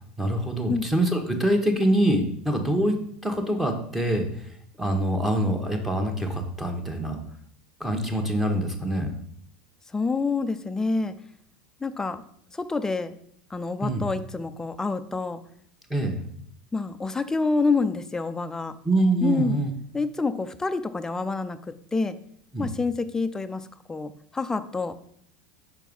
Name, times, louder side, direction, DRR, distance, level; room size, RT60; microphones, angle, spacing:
voice 1, 0.2-3.0 3.2-4.3 4.8-7.2 7.8-9.1 13.8-14.0 15.9-16.2 18.8-19.7 22.5-22.7, right 1 dB, 5° right, 2 dB, 1.3 m, -24 dB
voice 2, 9.9-11.1 11.8-12.2 12.5-13.2 13.5-15.4 16.7-18.8 19.2-19.6 19.9-21.6 21.9-22.2 22.6-25.0, left 4 dB, 10° left, 10 dB, 0.5 m, -27 dB
6.0 x 4.6 x 5.4 m, 0.66 s
hypercardioid pair, 95°, 5 cm